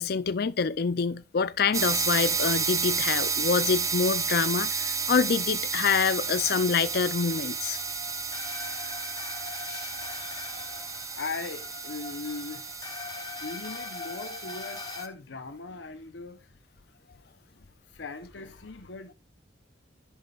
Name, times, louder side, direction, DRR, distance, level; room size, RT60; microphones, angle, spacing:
voice 1, 0.0-7.8 9.7-9.9, left 5 dB, 55° left, 0.5 m, -26 dB
sound 1, 1.7-15.1, right 5 dB, 20° right, 0.7 m, -32 dB
sound 2, 6.1-15.0, left 4 dB, 25° left, 1.0 m, -42 dB
voice 2, 11.1-12.7 13.4-16.4 17.5-19.1, left 3 dB, 80° left, 0.9 m, -39 dB
11.0 x 6.7 x 2.4 m
head